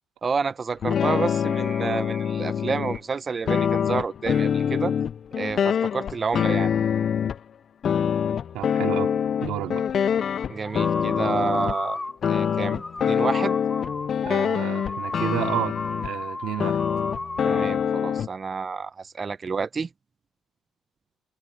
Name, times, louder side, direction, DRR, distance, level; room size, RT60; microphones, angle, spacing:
voice 1, 0.2-4.9 5.4-6.7 10.5-12.0 12.3-13.6 17.4-19.9, right 5 dB, 35° right, 0.8 m, -29 dB
sound 1, 0.8-3.0 3.5-7.4 7.8-11.8 12.2-16.1 16.6-18.3, left 8 dB, 50° left, 0.5 m, -25 dB
voice 2, 8.5-9.1 9.4-9.8 14.2-16.8, right 14 dB, 80° right, 2.5 m, -31 dB
sound 2, 10.6-17.8, left 2 dB, 20° left, 5.0 m, -34 dB
supercardioid pair, 80°, 0 cm